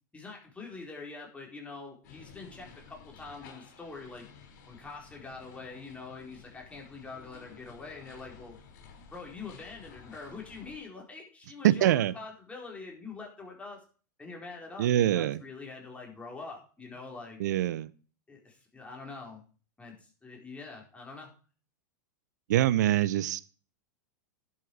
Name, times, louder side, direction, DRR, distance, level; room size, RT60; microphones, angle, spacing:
voice 1, 0.1-4.3 4.6-8.6 9.1-13.8 14.2-17.4 18.3-19.4 19.8-21.3, left 4 dB, 15° left, -1 dB, 4.6 m, -44 dB
sound 1, 2.0-10.8, left 6 dB, 55° left, 4.6 m, -53 dB
voice 2, 11.6-12.1 14.8-15.4 17.4-17.9 22.5-23.4, right 12 dB, 65° right, 17 dB, 0.8 m, -24 dB
11.5 x 8.1 x 4.8 m, 0.39 s
hypercardioid pair, 100°, 10 cm